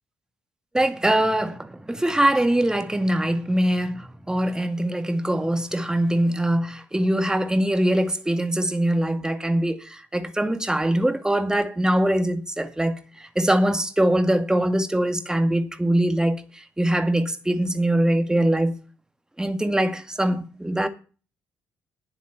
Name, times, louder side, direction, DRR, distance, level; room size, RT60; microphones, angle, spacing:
voice 1, 0.7-18.7 19.4-20.9, right 1 dB, 10° right, 2.1 m, -23 dB
20.0 x 7.3 x 5.8 m
figure-of-eight pair, 45°, 7 cm